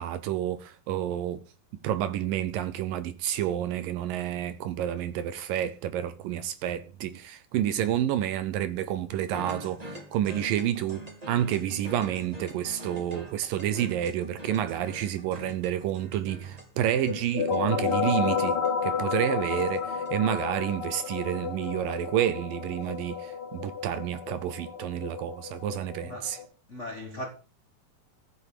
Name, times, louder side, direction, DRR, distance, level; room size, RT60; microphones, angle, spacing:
voice 1, 0.0-1.4 1.7-26.4, right 11 dB, 75° right, 2.4 m, -29 dB
sound 1, 9.2-21.9, right 1 dB, 10° right, 2.5 m, -45 dB
sound 2, 17.1-26.5, left 6 dB, 45° left, 2.3 m, -31 dB
voice 2, 26.0-26.4 26.7-27.3, left 1 dB, 70° left, 0.6 m, -38 dB
14.0 x 6.7 x 6.6 m
omnidirectional pair, 4.2 m